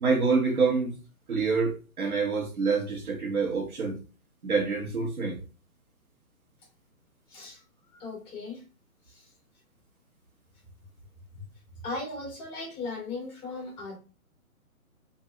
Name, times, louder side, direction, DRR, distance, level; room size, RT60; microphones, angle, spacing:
voice 1, 0.0-1.0 1.3-4.0 4.4-5.4, right 4 dB, 85° right, 1.2 m, -26 dB
voice 2, 7.3-7.6 7.9-8.6 9.1-9.3 11.3-14.0, left 3 dB, 15° left, 0.9 m, -38 dB
3.0 x 2.6 x 2.5 m
figure-of-eight pair, 140°, 43 cm